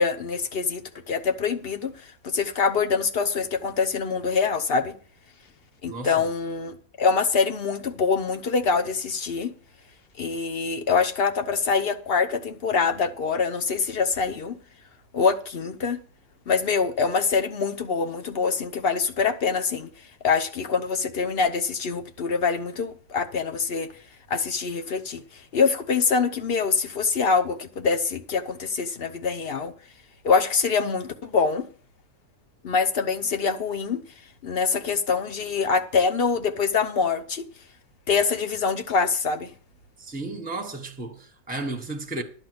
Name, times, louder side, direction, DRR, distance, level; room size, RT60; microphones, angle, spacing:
voice 1, 0.0-4.9 5.8-9.5 10.2-14.5 15.1-16.0 16.5-19.9 20.2-23.9 24.3-25.2 25.5-29.7 30.2-31.6 32.6-34.0 34.4-37.4 38.1-39.5, left 5 dB, 45° left, 1.0 m, -24 dB
voice 2, 5.8-6.3 40.0-42.2, right 2 dB, 5° right, 1.1 m, -33 dB
11.0 x 5.4 x 7.9 m
omnidirectional pair, 1.6 m